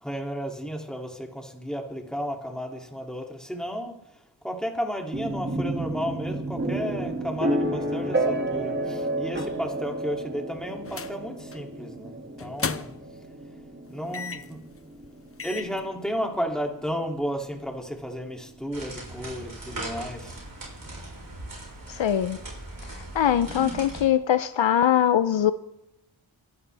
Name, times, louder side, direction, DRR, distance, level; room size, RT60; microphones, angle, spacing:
voice 1, 0.0-4.0 4.4-12.9 13.9-14.6 15.4-20.4, equal, ahead, 2.5 m, -33 dB
sound 1, 5.1-18.9, right 1 dB, 25° right, 2.1 m, -31 dB
sound 2, 10.9-11.2 11.5-11.7 12.4-13.2 14.1-14.6 15.0-15.1 15.4-15.8, left 5 dB, 30° left, 0.6 m, -34 dB
sound 3, 18.7-24.0, right 2 dB, 45° right, 6.9 m, -39 dB
voice 2, 21.9-22.4 23.0-25.5, left 10 dB, 70° left, 0.6 m, -22 dB
23.5 x 11.0 x 3.4 m
wide cardioid pair, 75°, 47 cm